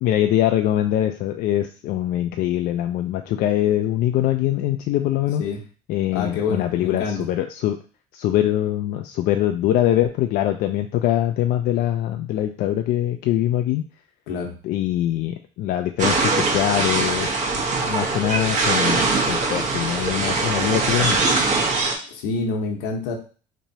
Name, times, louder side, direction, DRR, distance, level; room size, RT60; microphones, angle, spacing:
voice 1, 0.0-5.4 5.9-7.8 8.1-13.8 14.6-17.3 17.9-21.2, left 12 dB, 65° left, 6 dB, 0.4 m, -23 dB
voice 2, 6.1-7.2 14.3-14.5 22.1-23.2, left 4 dB, 85° left, 3 dB, 1.0 m, -26 dB
sound 1, 16.0-22.0, right 3 dB, 50° right, 1.1 m, -22 dB
4.3 x 3.1 x 2.8 m, 0.38 s
supercardioid pair, 100°, 16 cm